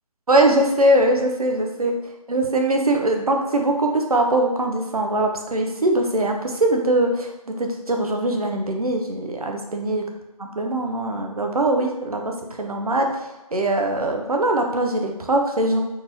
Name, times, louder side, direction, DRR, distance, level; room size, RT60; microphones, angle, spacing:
voice 1, 0.3-1.9 2.3-10.0 10.4-12.2 12.5-15.8, right 1 dB, 70° right, 3 dB, 0.9 m, -21 dB
4.5 x 3.9 x 2.7 m, 1.0 s
figure-of-eight pair, 150°, 20 cm